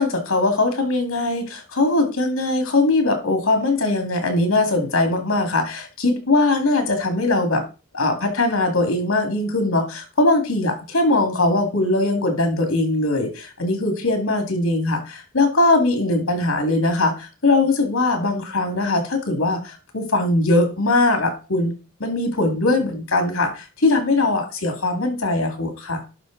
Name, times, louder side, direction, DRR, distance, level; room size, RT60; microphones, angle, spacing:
voice 1, 0.0-7.6 7.9-21.7 22.0-26.0, left 2 dB, 85° left, 5 dB, 2.3 m, -21 dB
11.0 x 5.4 x 3.9 m, 0.31 s
head